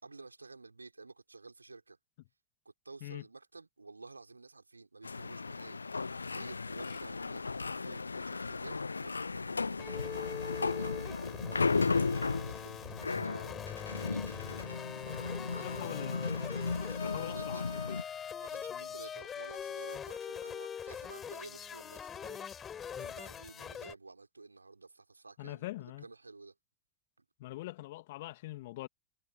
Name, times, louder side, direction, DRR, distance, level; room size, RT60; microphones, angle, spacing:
voice 1, 0.0-2.0 2.6-5.8 6.2-13.5 14.0-14.5 15.1-15.8 16.5-17.7 18.4-22.5 22.9-26.5 27.2-27.3, right 3 dB, 80° right, 4.7 m, -52 dB
sound 1, 5.0-18.0, left 4 dB, 80° left, 0.5 m, -35 dB
sound 2, 9.8-23.9, left 8 dB, 20° left, 4.2 m, -42 dB
voice 2, 15.6-16.3 16.9-18.0 18.7-18.8 25.4-26.0 27.4-28.9, left 18 dB, 50° left, 2.6 m, -43 dB
figure-of-eight pair, 90°, 0 cm